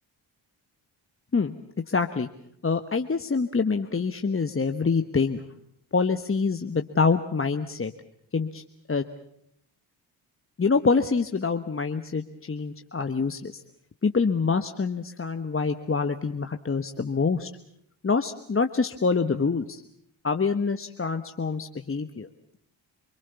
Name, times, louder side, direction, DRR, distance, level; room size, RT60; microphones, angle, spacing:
voice 1, 1.9-2.3 2.6-5.4 5.9-7.9 8.3-8.6 8.9-9.0 10.6-13.6 14.0-17.5 18.0-19.8 20.2-22.3, left 4 dB, 25° left, 7 dB, 1.3 m, -26 dB
27.5 x 21.5 x 7.0 m, 0.72 s
supercardioid pair, 45°, 47 cm